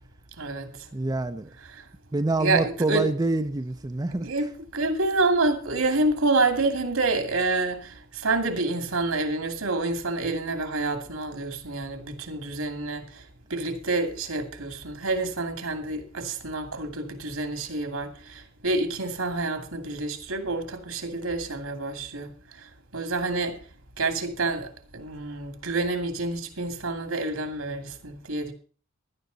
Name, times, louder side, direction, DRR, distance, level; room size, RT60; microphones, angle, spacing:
voice 1, 0.4-0.7 2.4-3.1 4.2-4.5 4.7-13.0 13.5-22.3 22.9-23.6 24.0-24.7 24.9-28.5, right 2 dB, 80° right, 2.6 m, -28 dB
voice 2, 0.9-1.5 2.1-4.5, right 2 dB, 20° right, 0.5 m, -27 dB
16.5 x 12.0 x 4.0 m
head